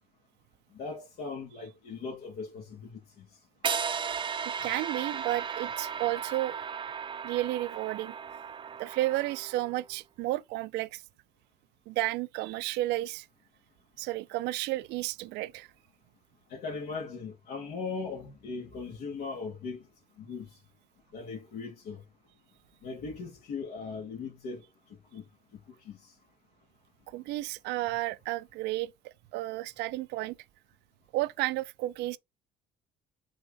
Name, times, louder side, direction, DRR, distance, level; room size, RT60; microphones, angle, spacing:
voice 1, 0.7-3.4 4.1-4.2 16.5-19.9 20.2-20.5 21.1-22.0 22.8-24.6 25.1-25.2 25.8-26.1, left 4 dB, 75° left, 2.5 m, -39 dB
sound 1, 3.6-9.8, right 6 dB, 30° right, 0.6 m, -35 dB
voice 2, 4.4-6.6 7.2-8.1 8.8-11.0 11.9-13.3 14.0-15.7 27.1-28.9 29.3-30.4 31.1-32.2, right 17 dB, 85° right, 0.5 m, -32 dB
6.4 x 3.6 x 4.1 m
cardioid pair, 110°, 17 cm